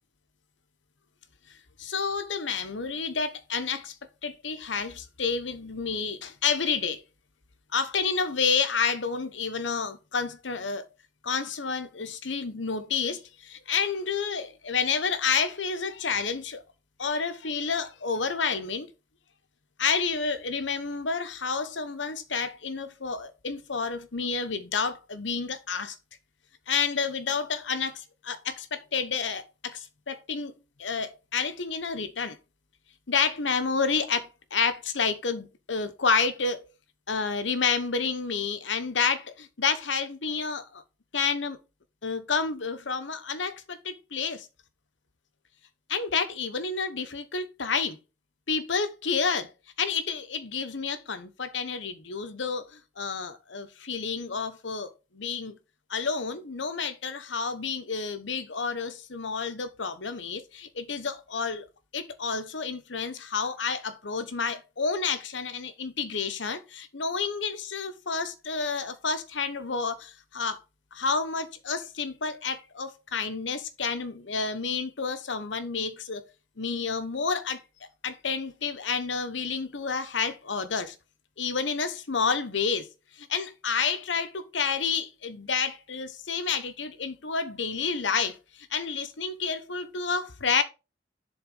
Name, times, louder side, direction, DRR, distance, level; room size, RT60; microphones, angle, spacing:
voice 1, 1.8-4.0 4.2-7.0 7.7-10.9 11.2-16.6 17.0-18.9 19.8-26.0 26.7-30.5 30.8-32.4 33.1-36.6 37.1-40.8 41.1-41.6 42.0-44.5 45.9-48.0 48.5-49.5 49.8-55.6 55.9-61.7 61.9-70.6 70.9-76.2 76.6-77.6 78.0-81.0 81.4-82.9 83.1-90.6, left 5 dB, 80° left, 1.1 m, -30 dB
7.3 x 4.0 x 5.4 m
head